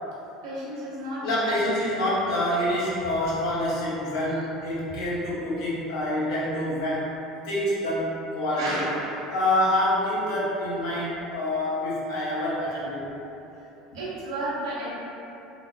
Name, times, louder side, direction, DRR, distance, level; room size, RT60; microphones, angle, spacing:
voice 1, 0.4-1.2 8.6-9.3 13.9-14.9, right 1 dB, 70° right, -8 dB, 0.8 m, -32 dB
voice 2, 1.2-7.1 7.4-8.8 9.3-13.0, left 1 dB, 65° left, -8 dB, 0.8 m, -26 dB
3.3 x 2.1 x 2.2 m, 2.9 s
figure-of-eight pair, 70°, 3 cm